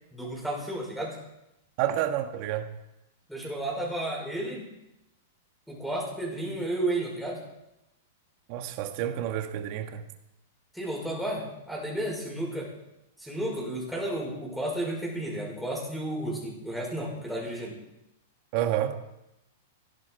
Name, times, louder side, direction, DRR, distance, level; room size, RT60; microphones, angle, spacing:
voice 1, 0.1-1.2 3.3-4.7 5.7-7.4 10.7-12.7 13.2-17.8, right 1 dB, ahead, 5.3 m, -32 dB
voice 2, 1.8-2.7 8.5-10.0 18.5-19.0, right 11 dB, 50° right, 1.5 m, -29 dB
16.0 x 11.0 x 4.6 m
hypercardioid pair, 130°, 0 cm